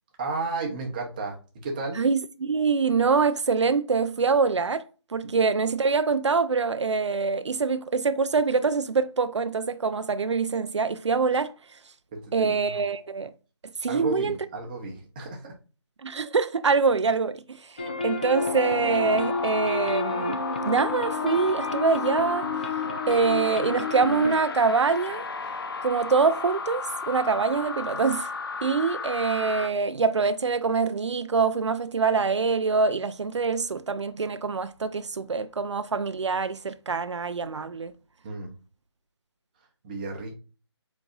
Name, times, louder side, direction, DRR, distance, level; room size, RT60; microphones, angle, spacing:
voice 1, 0.2-2.0 12.1-12.7 13.9-15.5 38.2-38.5 39.8-40.3, right 3 dB, 20° right, 0.8 m, -33 dB
voice 2, 1.9-4.9 5.1-11.5 12.3-13.3 13.8-14.4 16.0-17.8 18.0-20.4 20.7-22.5 23.1-25.2 25.8-28.3 28.6-37.9, right 4 dB, 80° right, 0.5 m, -24 dB
sound 1, 17.8-24.4, left 4 dB, 20° left, 0.4 m, -31 dB
sound 2, 18.3-29.7, left 4 dB, 55° left, 0.7 m, -34 dB
4.7 x 4.1 x 2.4 m
figure-of-eight pair, 165°, 15 cm